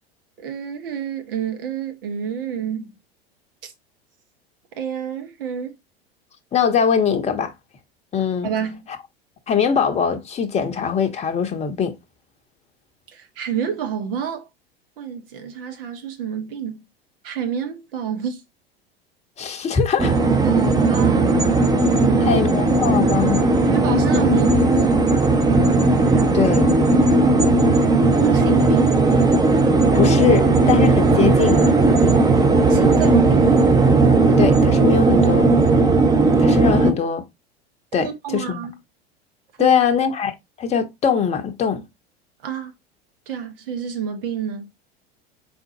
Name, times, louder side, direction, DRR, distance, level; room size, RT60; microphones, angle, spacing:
voice 1, 0.4-2.9 3.6-3.7 4.8-5.7 8.4-8.9 13.1-14.4 15.0-16.8 17.2-18.4 20.4-21.4 21.9-22.3 23.6-25.2 28.2-29.0 32.7-33.6 38.0-38.7 39.6-39.8 42.4-42.7 43.3-44.7, right 8 dB, 65° right, 1.0 m, -28 dB
voice 2, 6.5-7.5 8.1-8.5 9.5-12.0 19.4-20.1 22.2-23.4 26.3-26.7 29.9-31.7 34.3-35.5 36.4-37.3 37.9-38.7 39.6-40.3 40.6-41.8, left 7 dB, 20° left, 0.8 m, -21 dB
sound 1, 20.0-36.9, right 3 dB, 10° right, 0.7 m, -16 dB
4.2 x 3.8 x 2.7 m
figure-of-eight pair, 80°, 31 cm